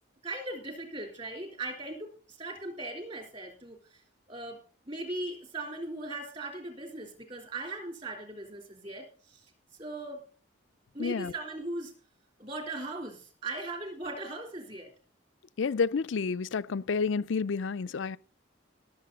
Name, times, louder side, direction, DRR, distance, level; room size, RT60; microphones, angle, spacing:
voice 1, 0.2-3.8 4.3-9.4 9.8-10.2 10.9-11.9 12.4-14.9, right 2 dB, 30° right, 3.7 m, -39 dB
voice 2, 11.0-11.3 15.6-18.2, left 5 dB, 65° left, 0.4 m, -30 dB
18.5 x 7.6 x 4.1 m
head